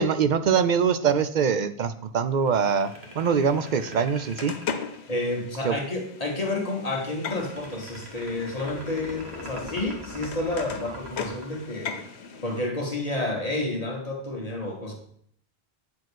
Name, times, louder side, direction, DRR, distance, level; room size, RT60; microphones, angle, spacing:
voice 1, 0.0-4.6 5.6-5.7, right 6 dB, 55° right, 10 dB, 0.6 m, -23 dB
sound 1, 2.4-5.5 7.0-12.5, right 1 dB, 70° right, 1.7 m, -43 dB
sound 2, 2.5-12.7, left 6 dB, 90° left, 1.1 m, -39 dB
voice 2, 5.1-12.0 12.4-14.9, left 2 dB, 35° left, -1 dB, 1.7 m, -30 dB
8.4 x 4.4 x 6.3 m, 0.64 s
omnidirectional pair, 1.1 m